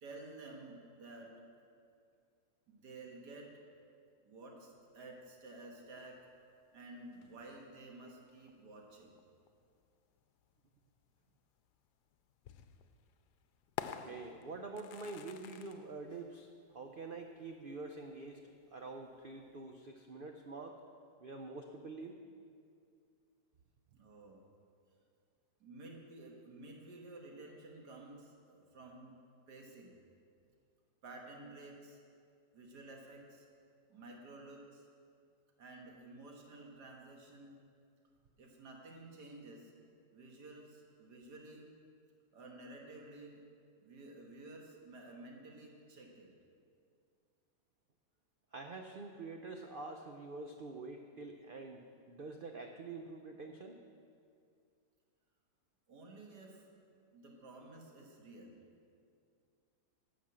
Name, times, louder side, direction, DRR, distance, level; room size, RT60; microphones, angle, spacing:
voice 1, 0.0-1.3 2.7-3.5 4.3-6.2 6.7-9.1 23.9-24.4 25.6-29.1 29.5-29.9 31.0-32.0 32.5-33.5 33.9-34.9 35.6-37.6 38.4-39.7 40.1-41.7 42.3-43.4 43.8-46.3 55.9-56.7 57.1-58.6, right 2 dB, 90° right, 0 dB, 2.1 m, -52 dB
sound 1, 4.6-19.9, left 9 dB, 90° left, 1.2 m, -53 dB
voice 2, 14.0-20.8 21.2-22.2 48.5-53.8, right 3 dB, 60° right, 4 dB, 0.5 m, -46 dB
12.0 x 6.4 x 7.5 m, 2.3 s
omnidirectional pair, 1.7 m